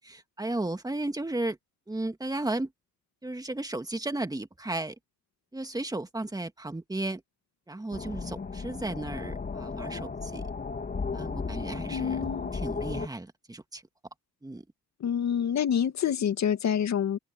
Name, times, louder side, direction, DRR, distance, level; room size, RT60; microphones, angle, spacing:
voice 1, 0.0-1.6 1.9-2.7 3.2-4.9 5.5-7.2 7.7-10.4 11.1-13.8 14.4-14.7, right 2 dB, 10° right, 2.2 m, -34 dB
sound 1, 7.9-13.1, left 4 dB, 30° left, 3.3 m, -35 dB
voice 2, 11.9-12.5 15.0-17.2, left 8 dB, 60° left, 2.6 m, -27 dB
cardioid pair, 90°, 30 cm